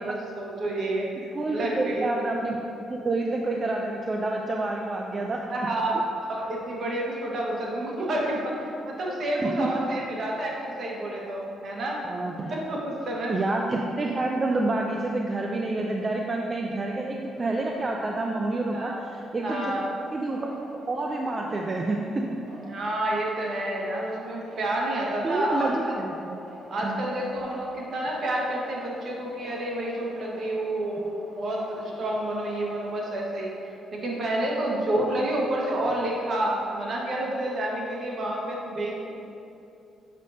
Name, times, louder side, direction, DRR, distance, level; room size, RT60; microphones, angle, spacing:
voice 1, 0.0-1.1 1.5-2.1 5.5-6.0 6.3-12.0 12.5-13.3 18.7-19.0 19.4-19.9 22.7-25.7 26.7-39.1, right 1 dB, 55° right, -3 dB, 1.4 m, -29 dB
voice 2, 1.2-2.6 2.9-5.4 9.4-9.8 12.1-12.5 13.3-22.4 25.2-26.4 26.8-27.0, right 2 dB, 30° right, 1 dB, 0.5 m, -28 dB
sound 1, 19.9-33.1, right 1 dB, 75° right, 1.2 m, -48 dB
7.3 x 6.2 x 2.8 m, 2.7 s
cardioid pair, 90°, 0 cm